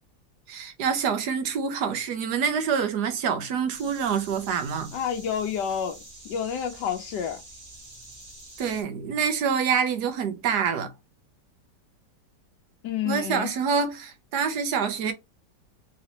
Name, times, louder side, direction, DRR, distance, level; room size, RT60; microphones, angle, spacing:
voice 1, 0.5-4.9 8.6-10.9 13.0-15.1, right 6 dB, 70° right, 1.4 m, -26 dB
sound 1, 3.7-8.8, right 1 dB, 30° right, 1.6 m, -46 dB
voice 2, 4.9-7.4 12.8-13.5, left 8 dB, 80° left, 1.3 m, -29 dB
4.0 x 3.2 x 2.8 m
omnidirectional pair, 1.9 m